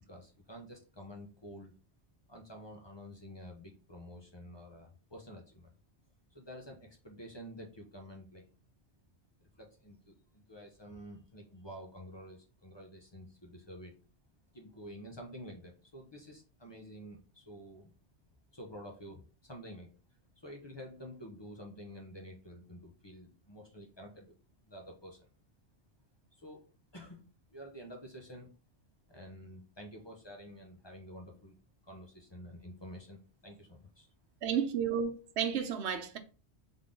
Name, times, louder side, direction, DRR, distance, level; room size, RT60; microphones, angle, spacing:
voice 1, 0.1-1.7 2.3-5.7 6.3-8.4 9.4-13.9 14.5-17.9 18.5-19.9 20.4-24.3 24.7-25.3 26.4-28.5 29.1-31.5 31.8-34.1, equal, 25° left, 0.8 m, -49 dB
voice 2, 34.4-36.2, right 7 dB, 80° right, 0.9 m, -32 dB
3.7 x 3.7 x 3.7 m
omnidirectional pair, 1.1 m